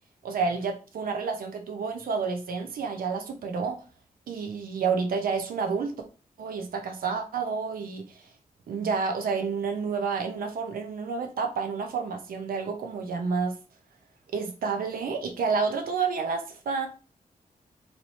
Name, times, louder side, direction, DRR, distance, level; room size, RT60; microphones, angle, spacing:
voice 1, 0.2-3.8 4.3-6.0 6.4-8.3 8.7-13.6 14.3-16.9, right 5 dB, 90° right, 4 dB, 0.7 m, -29 dB
3.2 x 2.9 x 4.0 m, 0.35 s
wide cardioid pair, 160°, 15 cm